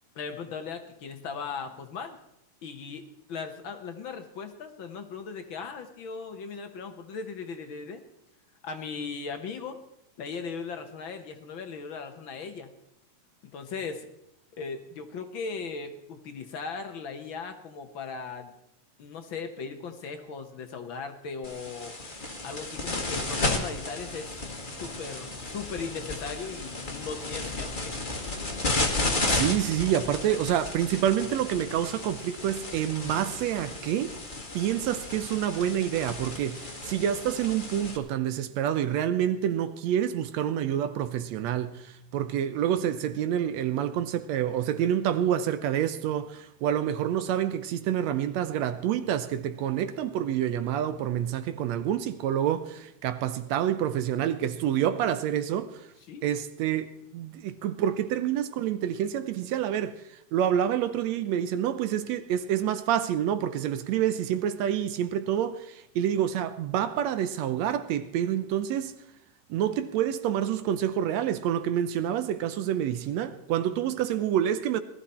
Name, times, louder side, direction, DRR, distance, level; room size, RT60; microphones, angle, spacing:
voice 1, 0.1-2.2 2.6-8.0 8.6-9.8 10.2-12.7 13.5-14.1 14.6-18.5 19.0-21.9 22.4-24.3 24.8-28.1 56.1-56.3, left 5 dB, 60° left, 1.4 m, -38 dB
sound 1, 21.4-38.0, left 2 dB, 20° left, 1.4 m, -33 dB
voice 2, 29.3-34.2 34.5-55.9 56.2-69.0 69.5-74.8, right 10 dB, 75° right, 1.8 m, -28 dB
19.0 x 13.0 x 4.3 m
omnidirectional pair, 3.4 m